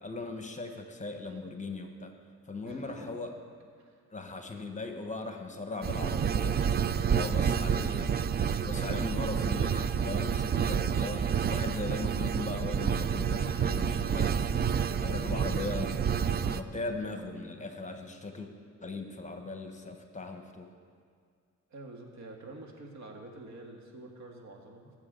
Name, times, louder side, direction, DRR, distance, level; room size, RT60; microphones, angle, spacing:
voice 1, 0.0-2.1 2.5-3.3 4.1-6.6 7.1-8.1 8.6-14.7 15.0-16.0 16.4-18.5 18.8-20.7, left 3 dB, 25° left, 5 dB, 1.2 m, -38 dB
sound 1, 5.8-16.6, right 7 dB, 35° right, 0.4 m, -29 dB
voice 2, 21.7-24.9, right 2 dB, 65° right, 2 dB, 1.8 m, -47 dB
19.5 x 7.3 x 3.9 m, 2.1 s
cardioid pair, 90°, 30 cm